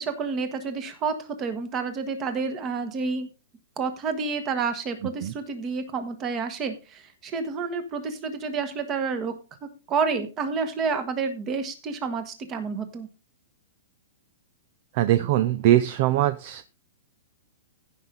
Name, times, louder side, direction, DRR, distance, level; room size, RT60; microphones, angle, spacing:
voice 1, 0.0-3.3 3.8-9.3 9.9-13.1, right 5 dB, 20° right, 9 dB, 1.3 m, -29 dB
voice 2, 14.9-16.7, right 13 dB, 35° right, 13 dB, 0.5 m, -22 dB
15.5 x 5.7 x 3.8 m, 0.30 s
hypercardioid pair, 175°, 0 cm